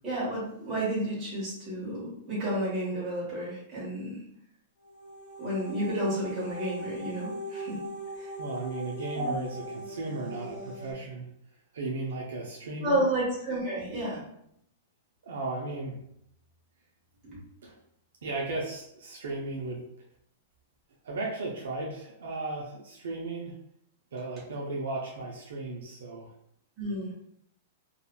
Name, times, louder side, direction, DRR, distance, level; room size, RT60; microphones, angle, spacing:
voice 1, 0.0-4.2 5.4-7.8 8.2-8.3 9.1-9.4 12.8-14.2 17.2-17.4 26.8-27.1, right 1 dB, 25° right, -8 dB, 1.3 m, -31 dB
sound 1, 4.8-10.9, right 1 dB, 50° left, 0.8 m, -40 dB
voice 2, 8.4-11.3 11.7-13.0 15.2-16.0 17.6-17.8 18.2-19.8 21.0-23.6 24.1-26.3, right 2 dB, 85° right, -1 dB, 0.5 m, -35 dB
2.7 x 2.4 x 2.2 m, 0.74 s
hypercardioid pair, 150°, 0 cm